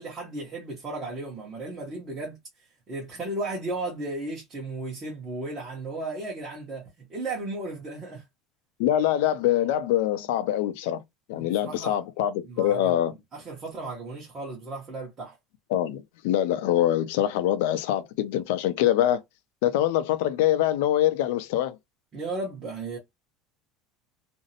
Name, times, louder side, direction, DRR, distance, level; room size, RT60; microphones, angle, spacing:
voice 1, 0.0-2.4 2.9-8.2 11.4-12.0 12.4-12.9 13.3-15.4 22.1-23.0, right 2 dB, 25° right, 0.8 m, -35 dB
voice 2, 8.8-11.0 11.3-13.1 15.7-19.2 19.6-21.8, left 12 dB, 70° left, 0.5 m, -24 dB
2.5 x 2.0 x 2.7 m
cardioid pair, 165°, 0 cm